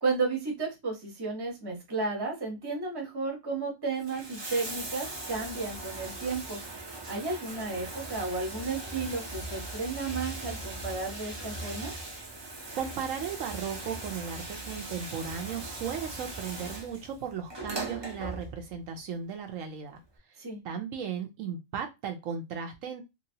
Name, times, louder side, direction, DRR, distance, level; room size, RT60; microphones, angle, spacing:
voice 1, 0.0-6.6 7.1-11.9 20.4-20.6, right 3 dB, 20° right, 1 dB, 0.8 m, -33 dB
Bathtub (filling or washing), 3.9-18.9 20.0-20.1, right 2 dB, 40° right, 0.3 m, -39 dB
voice 2, 12.7-20.0 20.6-23.0, right 7 dB, 75° right, 4 dB, 1.0 m, -36 dB
2.9 x 2.8 x 2.7 m, 0.22 s
omnidirectional pair, 1.4 m